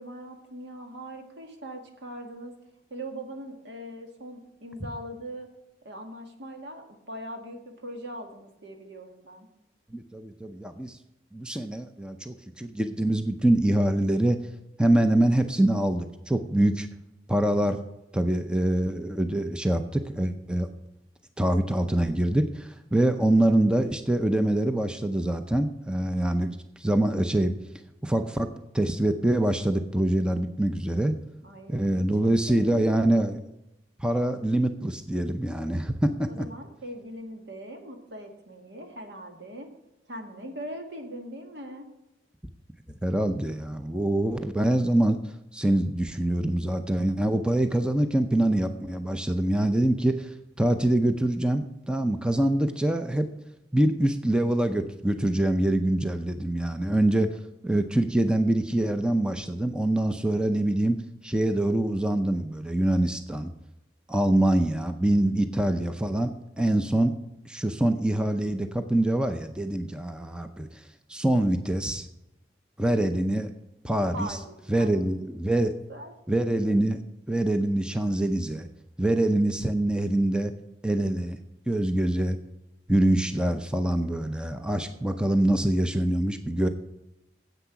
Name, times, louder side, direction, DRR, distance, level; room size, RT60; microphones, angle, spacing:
voice 1, 0.0-2.6 2.9-5.5 5.8-9.5 31.4-33.3 36.3-39.7 40.1-41.9 74.1-76.1, right 1 dB, 75° right, 3 dB, 1.9 m, -41 dB
voice 2, 9.9-11.0 11.3-14.4 14.8-16.9 17.3-17.8 18.1-20.7 21.4-27.5 28.0-31.2 31.7-33.4 34.0-36.5 43.0-45.2 45.5-53.3 53.7-57.3 57.6-61.0 61.2-63.5 64.1-67.1 67.5-70.8 71.1-72.1 72.8-73.5 73.8-74.4 74.7-75.7 76.3-77.0 77.3-78.7 79.0-80.5 80.8-81.4 81.7-82.4 82.9-86.7, right 1 dB, 5° right, 7 dB, 0.5 m, -25 dB
9.9 x 8.1 x 5.8 m, 0.91 s
head